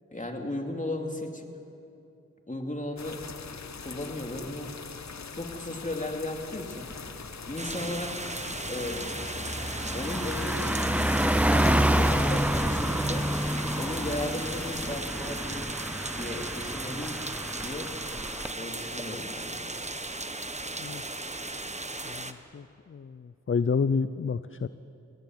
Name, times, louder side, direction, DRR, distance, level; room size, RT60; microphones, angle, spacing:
voice 1, 0.1-1.5 2.5-3.2 3.5-4.7 5.3-6.9 7.5-8.1 8.6-9.1 9.9-11.2 11.5-13.3 13.8-15.7 16.2-17.2 17.6-17.9 18.5-19.7, left 1 dB, 25° left, 3 dB, 2.8 m, -35 dB
sound 1, 3.0-15.0, left 5 dB, 60° left, 0.9 m, -42 dB
Car passing by, 6.9-7.2 7.6-18.5, right 1 dB, 5° right, 0.6 m, -28 dB
sound 2, 7.6-22.3, right 2 dB, 20° right, 1.2 m, -36 dB
voice 2, 22.0-24.7, left 5 dB, 40° left, 14 dB, 0.6 m, -30 dB
21.0 x 17.5 x 7.8 m, 2.7 s
cardioid pair, 40°, 32 cm